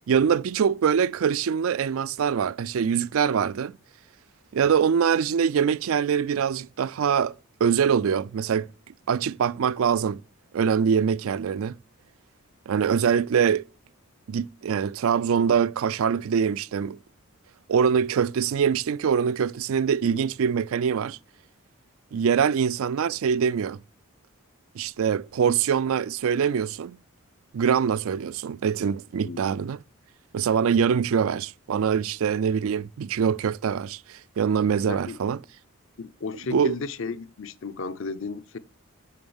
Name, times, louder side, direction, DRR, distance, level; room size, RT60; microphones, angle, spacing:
voice 1, 0.1-3.8 4.5-7.4 7.6-8.7 9.1-10.2 10.5-11.8 12.7-13.6 14.3-17.0 17.7-21.2 22.1-23.8 24.7-27.0 27.5-29.8 30.3-35.4 36.5-36.7, right 7 dB, 70° right, 0.4 m, -24 dB
voice 2, 34.9-35.2 36.0-38.6, left 4 dB, 60° left, 0.6 m, -34 dB
7.3 x 6.2 x 7.0 m
head